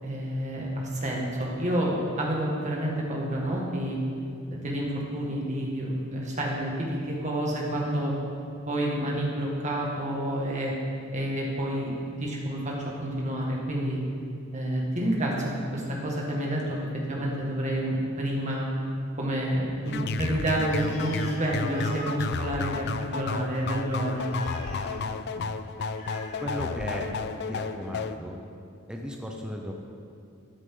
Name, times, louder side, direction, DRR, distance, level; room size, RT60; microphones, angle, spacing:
voice 1, 0.0-4.0 4.5-8.2 8.7-10.7 11.1-14.0 14.5-16.8 17.1-18.7 19.2-22.9 23.1-24.3, right 1 dB, 35° right, -3 dB, 2.0 m, -29 dB
sound 1, 19.8-28.2, left 4 dB, 50° left, 0.4 m, -32 dB
Animal, 20.6-27.4, left 1 dB, 35° left, 1.5 m, -44 dB
voice 2, 26.4-27.1 27.5-28.4 28.9-29.7, equal, 5° right, 0 dB, 0.7 m, -35 dB
13.0 x 9.8 x 3.9 m, 2.5 s
head